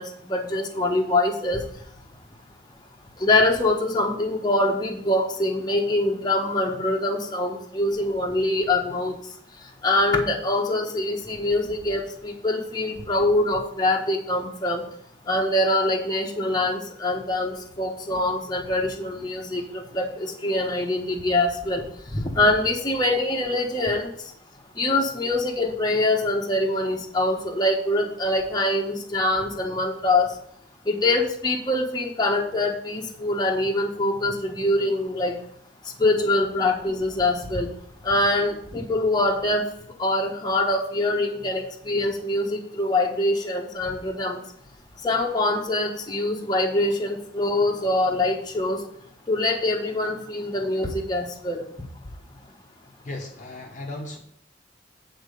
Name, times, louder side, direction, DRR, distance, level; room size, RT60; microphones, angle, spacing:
voice 1, 0.0-1.6 3.2-9.2 9.8-14.8 15.3-21.8 22.1-24.1 24.8-30.3 30.9-35.3 36.0-37.7 38.0-39.6 40.0-44.4 45.0-48.8 49.3-51.6, left 2 dB, 20° left, 0 dB, 1.2 m, -24 dB
voice 2, 53.0-54.2, left 2 dB, 40° left, 1 dB, 1.1 m, -36 dB
8.9 x 4.4 x 6.5 m, 0.66 s
head